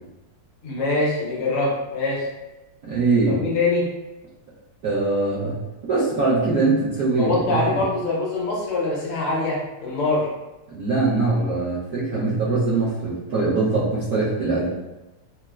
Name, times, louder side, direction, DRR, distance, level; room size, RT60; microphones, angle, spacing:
voice 1, 0.6-2.3 3.3-3.9 7.2-10.3, left 2 dB, 80° left, -4 dB, 1.7 m, -23 dB
voice 2, 2.8-3.4 4.8-7.8 10.7-14.7, right 3 dB, 70° right, -10 dB, 0.9 m, -22 dB
4.2 x 2.0 x 2.3 m, 1.0 s
omnidirectional pair, 2.4 m